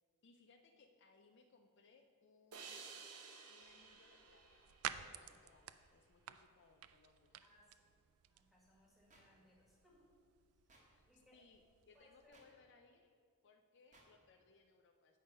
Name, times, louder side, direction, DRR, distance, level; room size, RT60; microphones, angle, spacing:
voice 1, 0.2-2.8 3.5-7.4 10.9-13.1 13.4-15.2, left 4 dB, 50° left, 5 dB, 0.4 m, -68 dB
sound 1, 2.5-5.8, right 5 dB, 85° right, 0.9 m, -55 dB
sound 2, 3.6-12.3, right 10 dB, 65° right, 0.3 m, -53 dB
voice 2, 7.4-7.9 8.3-10.1 10.5-10.6 11.1-11.4 11.9-12.4, left 1 dB, ahead, -4 dB, 1.6 m, -69 dB
sound 3, 9.1-9.2 10.7-10.8 12.3-12.5 13.9-14.1, right 2 dB, 35° right, 1.2 m, -65 dB
8.6 x 5.3 x 5.4 m, 2.2 s
head